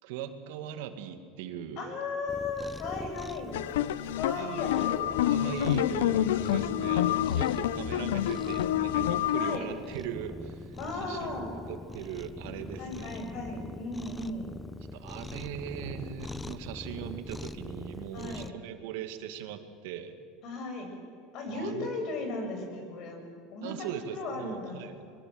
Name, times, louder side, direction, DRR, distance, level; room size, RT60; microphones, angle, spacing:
voice 1, 0.0-1.9 4.3-4.9 5.3-13.2 14.9-20.1 21.5-21.9 23.6-24.9, right 9 dB, 75° right, 8 dB, 2.2 m, -40 dB
voice 2, 1.8-3.5 4.2-5.0 5.4-5.8 9.3-9.7 10.8-11.6 12.8-14.5 18.1-18.5 20.4-21.0 21.3-23.2 23.5-24.8, left 3 dB, 55° left, 4 dB, 7.3 m, -36 dB
Cat, 2.3-18.5, left 2 dB, 10° left, 0.9 m, -43 dB
sound 1, 3.5-9.6, left 12 dB, 90° left, 0.8 m, -28 dB
sound 2, 9.1-15.5, left 1 dB, 35° left, 2.8 m, -53 dB
23.0 x 22.5 x 7.9 m, 2.4 s
supercardioid pair, 120°, 0 cm